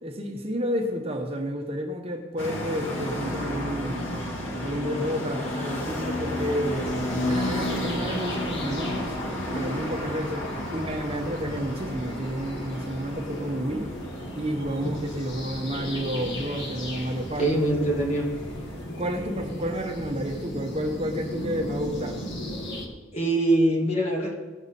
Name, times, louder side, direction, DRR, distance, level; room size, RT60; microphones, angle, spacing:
voice 1, 0.0-4.1 4.6-9.2 9.5-13.9 14.3-17.5 17.9-18.0 19.0-22.2, equal, 30° right, 3 dB, 0.9 m, -31 dB
sound 1, 2.4-18.8, left 1 dB, 85° left, 2.0 m, -33 dB
sound 2, 6.6-22.9, equal, 65° left, 1.7 m, -37 dB
voice 2, 17.4-18.3 23.1-24.3, right 1 dB, 30° left, -1 dB, 2.0 m, -23 dB
17.5 x 6.7 x 4.1 m, 1.3 s
head